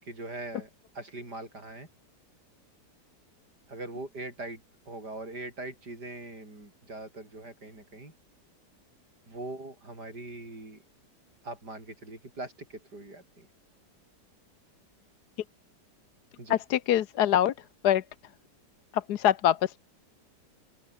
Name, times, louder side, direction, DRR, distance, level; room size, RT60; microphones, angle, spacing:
voice 1, 0.0-0.7 0.9-1.9 3.7-8.1 9.3-10.8 11.4-13.5 16.4-16.6, right 2 dB, 65° right, 7.7 m, -41 dB
voice 2, 16.5-17.5 17.8-18.0 18.9-19.8, left 11 dB, 70° left, 1.3 m, -24 dB
open air
omnidirectional pair, 1.9 m